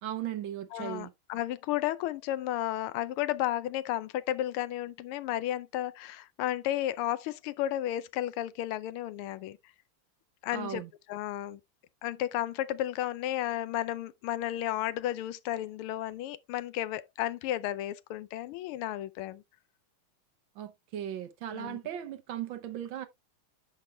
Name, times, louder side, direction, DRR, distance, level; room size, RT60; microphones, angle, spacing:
voice 1, 0.0-1.1 10.5-10.9 20.6-23.1, right 11 dB, 70° right, 1.4 m, -37 dB
voice 2, 0.7-9.6 10.4-10.8 11.1-11.6 12.0-19.4 21.5-21.8, left 13 dB, 80° left, 1.5 m, -33 dB
9.7 x 6.1 x 2.2 m
omnidirectional pair, 2.4 m